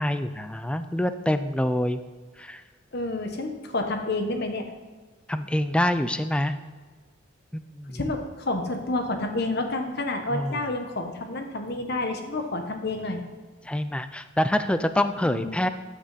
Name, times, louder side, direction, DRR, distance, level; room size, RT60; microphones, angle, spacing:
voice 1, 0.0-2.0 2.4-2.6 5.3-6.5 7.5-8.0 10.3-10.6 13.7-15.7, left 1 dB, 5° left, 10 dB, 0.4 m, -26 dB
voice 2, 2.9-4.6 7.9-13.2 15.2-15.6, left 2 dB, 55° left, 5 dB, 1.2 m, -29 dB
13.5 x 6.0 x 4.1 m, 1.4 s
head